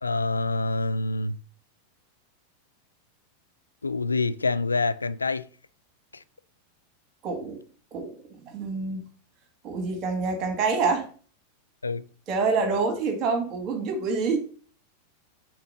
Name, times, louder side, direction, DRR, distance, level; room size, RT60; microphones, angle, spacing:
voice 1, 0.0-1.4 3.8-5.5 6.1-6.2 11.8-12.0, left 3 dB, 80° left, 0.3 m, -26 dB
voice 2, 7.2-7.6 7.9-8.1 8.4-9.0 9.6-11.0 12.3-14.4, right 4 dB, 35° right, 1.9 m, -26 dB
5.8 x 3.8 x 5.4 m
figure-of-eight pair, 90°, 0 cm